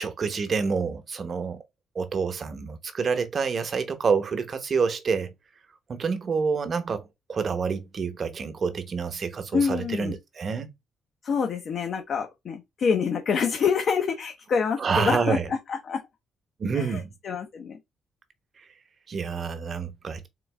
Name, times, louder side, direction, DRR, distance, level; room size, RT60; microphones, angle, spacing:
voice 1, 0.0-1.6 1.9-5.3 5.9-10.7 14.8-15.5 16.6-17.1 18.6-18.7 19.1-20.3, right 5 dB, 45° right, 1.0 m, -28 dB
voice 2, 9.5-10.2 11.2-16.0 16.7-16.9 17.2-17.8, left 6 dB, 60° left, 0.9 m, -26 dB
3.9 x 3.4 x 3.4 m
cardioid pair, 90°, 0 cm